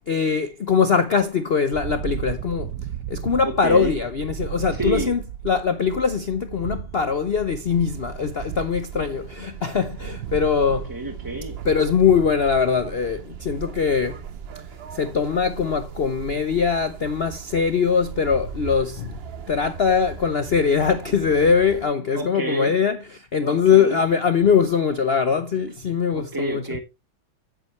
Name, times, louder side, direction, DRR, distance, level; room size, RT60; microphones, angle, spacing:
voice 1, 0.1-2.7 3.1-5.2 5.4-10.9 11.6-14.2 14.9-19.2 19.5-26.6, left 6 dB, 70° left, 0.5 m, -22 dB
sound 1, 1.7-11.9, right 9 dB, 65° right, 1.0 m, -34 dB
voice 2, 3.4-3.9 4.7-5.1 10.9-11.6 22.1-22.7 23.4-24.0 26.1-26.8, right 2 dB, 15° right, 0.8 m, -28 dB
sound 2, 7.7-21.9, right 7 dB, 85° right, 0.5 m, -39 dB
10.0 x 8.9 x 3.1 m
omnidirectional pair, 2.2 m